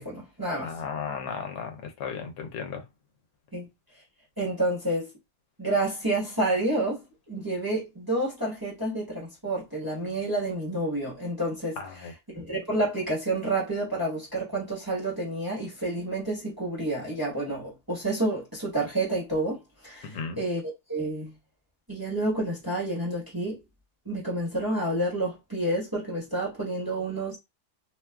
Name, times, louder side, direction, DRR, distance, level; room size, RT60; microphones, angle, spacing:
voice 1, 0.0-0.7 3.5-3.7 4.4-5.1 5.6-11.8 12.3-20.6 20.9-21.3 21.9-23.6 24.0-27.4, right 2 dB, 15° right, 1.0 m, -29 dB
voice 2, 0.6-2.8 11.8-12.1 20.0-20.4, left 6 dB, 85° left, 1.2 m, -35 dB
3.0 x 2.3 x 2.3 m
omnidirectional pair, 1.8 m